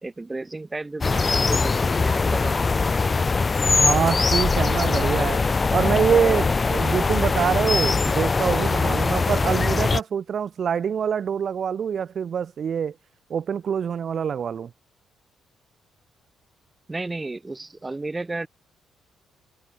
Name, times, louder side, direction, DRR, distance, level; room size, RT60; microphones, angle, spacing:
voice 1, 0.0-2.8 16.9-18.5, right 2 dB, 20° right, 5.1 m, -33 dB
sound 1, 1.0-10.0, left 4 dB, 30° left, 1.6 m, -21 dB
voice 2, 3.8-5.4 5.7-12.9 13.3-14.7, right 7 dB, 55° right, 4.0 m, -25 dB
cardioid pair, 90°, 0 cm